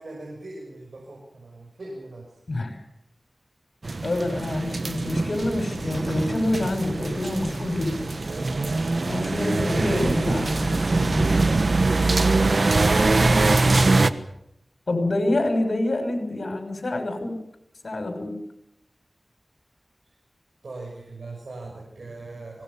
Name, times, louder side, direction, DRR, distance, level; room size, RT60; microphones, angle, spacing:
voice 1, 0.0-2.3 11.1-11.7 14.0-14.2 20.0-20.1 20.6-22.6, right 2 dB, 85° right, -1 dB, 6.5 m, -40 dB
voice 2, 2.5-2.8 4.0-8.2 9.0-11.3 13.8-14.2 14.9-17.4 17.8-18.4, left 1 dB, 70° left, 7 dB, 6.5 m, -27 dB
sound 1, 3.8-14.1, right 3 dB, 65° right, 1.3 m, -23 dB
25.0 x 20.5 x 7.1 m, 0.80 s
wide cardioid pair, 60°, 0 cm